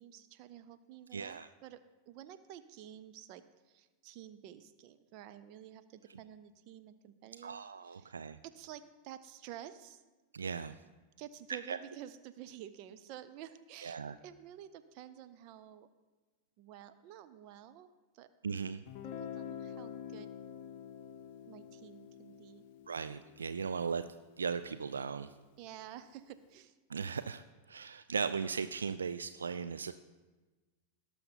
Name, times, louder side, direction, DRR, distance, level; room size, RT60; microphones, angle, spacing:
voice 1, 0.0-1.8 2.1-8.1 8.4-10.0 11.2-15.9 16.6-18.3 19.2-20.3 21.5-22.7 25.6-26.8, right 11 dB, 45° right, 12 dB, 0.7 m, -51 dB
voice 2, 1.1-1.5 7.4-8.4 10.3-10.8 11.7-11.8 13.8-14.2 18.4-18.8 22.9-24.0 24.4-25.4 26.9-29.9, right 6 dB, 70° right, 12 dB, 0.3 m, -37 dB
Guitar, 18.9-24.6, left 8 dB, 45° left, 0.8 m, -47 dB
17.5 x 6.8 x 4.0 m, 1.2 s
figure-of-eight pair, 90°, 0 cm